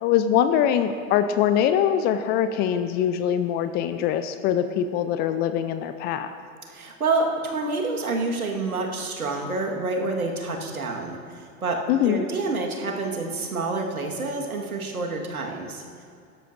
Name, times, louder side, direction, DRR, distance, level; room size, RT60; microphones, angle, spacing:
voice 1, 0.0-6.3 11.9-12.3, left 9 dB, 25° left, 10 dB, 0.3 m, -23 dB
voice 2, 6.7-16.0, right 3 dB, 90° right, 1 dB, 1.6 m, -28 dB
16.5 x 12.5 x 2.6 m, 2.3 s
hypercardioid pair, 95°, 42 cm